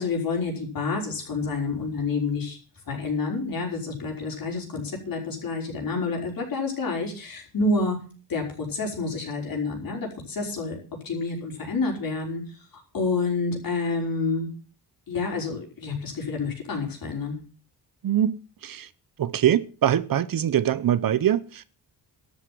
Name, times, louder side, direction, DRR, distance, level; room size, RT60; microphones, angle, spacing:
voice 1, 0.0-2.6 2.9-8.0 8.3-10.8 11.0-12.6 12.9-14.5 15.1-17.4, left 3 dB, 55° left, 5.5 m, -28 dB
voice 2, 18.0-18.4 18.6-18.9 19.2-21.6, right 10 dB, 55° right, 0.8 m, -23 dB
12.5 x 8.2 x 7.6 m
wide cardioid pair, 140°, 41 cm